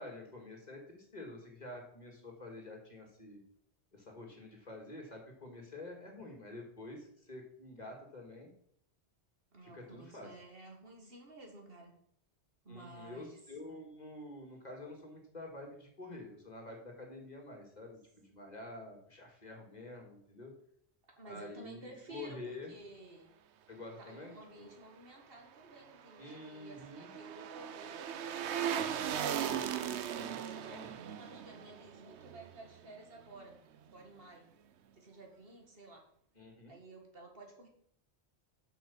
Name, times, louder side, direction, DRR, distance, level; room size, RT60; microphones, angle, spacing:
voice 1, 0.0-3.4 3.9-8.5 9.6-10.3 12.7-20.5 21.3-22.7 23.7-24.7 26.2-27.1 30.1-30.9 36.4-36.7, left 2 dB, 40° left, 1 dB, 2.2 m, -48 dB
voice 2, 9.5-11.9 12.6-13.4 21.1-23.3 24.0-29.4 29.9-34.5 35.0-36.0 36.7-37.7, right 2 dB, 55° right, 1 dB, 2.0 m, -53 dB
sound 1, 25.8-33.0 33.4-33.5, right 9 dB, 85° right, 1.0 m, -38 dB
7.8 x 5.7 x 7.0 m, 0.67 s
omnidirectional pair, 1.1 m